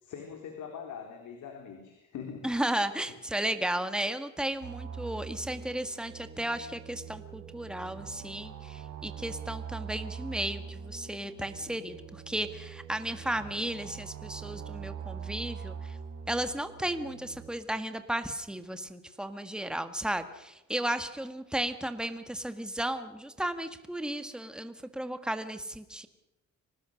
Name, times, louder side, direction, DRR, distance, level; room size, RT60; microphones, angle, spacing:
voice 1, 0.0-2.4, left 7 dB, 75° left, 3 dB, 3.7 m, -42 dB
voice 2, 2.4-16.0 16.3-26.1, right 1 dB, 5° right, 9 dB, 1.7 m, -34 dB
sound 1, 4.6-17.5, right 7 dB, 65° right, 4.0 m, -43 dB
25.0 x 19.0 x 6.5 m, 0.93 s
cardioid pair, 90°, 30 cm